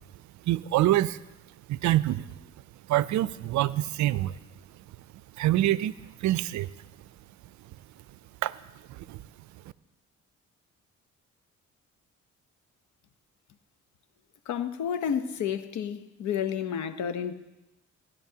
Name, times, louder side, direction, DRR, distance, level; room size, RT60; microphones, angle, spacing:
voice 1, 0.5-1.2 1.7-2.3 2.9-4.4 5.4-6.7 8.4-8.6 8.9-9.2, right 14 dB, 70° right, 18 dB, 0.5 m, -26 dB
voice 2, 14.5-17.3, left 8 dB, 70° left, 11 dB, 0.8 m, -30 dB
18.0 x 11.0 x 2.8 m, 0.99 s
cardioid pair, 90°, 30 cm